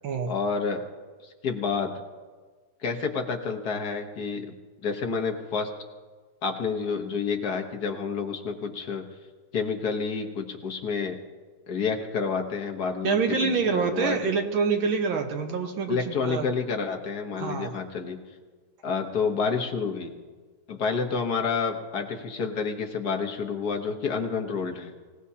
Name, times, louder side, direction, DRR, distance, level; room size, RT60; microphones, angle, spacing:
voice 1, 0.3-0.8 1.2-2.0 2.8-4.5 4.8-5.7 6.4-9.1 9.5-11.2 11.7-14.3 15.9-18.2 18.8-20.1 20.7-24.9, left 5 dB, 50° left, 3 dB, 1.6 m, -29 dB
voice 2, 13.0-16.5 17.4-17.7, right 5 dB, 70° right, 5 dB, 1.9 m, -26 dB
24.5 x 17.0 x 2.8 m, 1.4 s
omnidirectional pair, 2.3 m